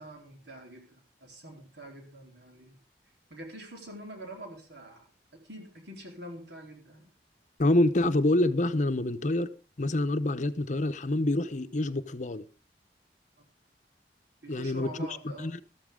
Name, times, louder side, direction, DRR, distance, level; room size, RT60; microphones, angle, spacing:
voice 1, 0.0-2.8 3.3-5.1 5.4-7.1 13.4-13.5 14.4-15.5, right 1 dB, 75° right, 4.1 m, -45 dB
voice 2, 7.6-9.5 9.8-12.5 14.5-15.1 15.4-15.6, left 1 dB, 45° left, 0.8 m, -26 dB
13.5 x 13.0 x 3.7 m
head